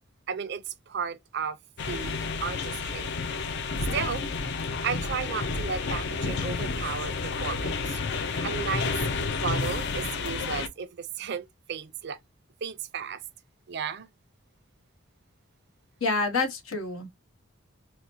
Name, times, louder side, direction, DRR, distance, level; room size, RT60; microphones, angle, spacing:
voice 1, 0.3-1.6 1.9-3.1 3.9-4.3 4.8-8.0 8.4-9.0 9.3-12.2 12.6-13.2 13.7-14.1, right 6 dB, 55° right, 0.5 m, -34 dB
sound 1, 1.8-10.7, left 4 dB, 55° left, 0.5 m, -30 dB
voice 2, 16.0-17.1, left 3 dB, 90° left, 1.1 m, -27 dB
4.8 x 2.1 x 2.7 m
head